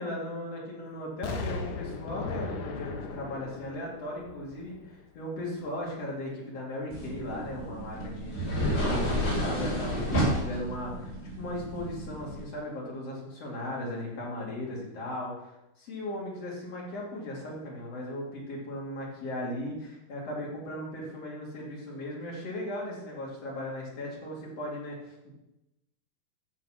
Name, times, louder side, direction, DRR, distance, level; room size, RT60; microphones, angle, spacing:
voice 1, 0.0-25.3, left 1 dB, 45° left, -4 dB, 3.2 m, -37 dB
Explosion, 1.2-5.2 5.6-5.7, left 4 dB, 70° left, 2.0 m, -38 dB
sound 1, 6.9-12.4, equal, 30° left, 4.2 m, -31 dB
13.5 x 4.6 x 5.8 m, 0.94 s
omnidirectional pair, 4.4 m